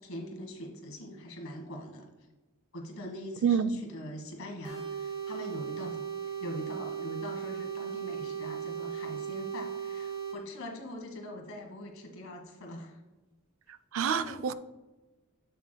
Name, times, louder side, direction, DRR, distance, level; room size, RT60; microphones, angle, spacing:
voice 1, 0.0-2.1 2.7-13.0 14.2-14.4, left 1 dB, 75° left, 1.5 m, -43 dB
voice 2, 3.4-3.8 13.9-14.5, right 7 dB, 65° right, 0.4 m, -27 dB
sound 1, 4.6-10.4, right 8 dB, 25° right, 1.1 m, -37 dB
8.3 x 6.8 x 2.3 m
head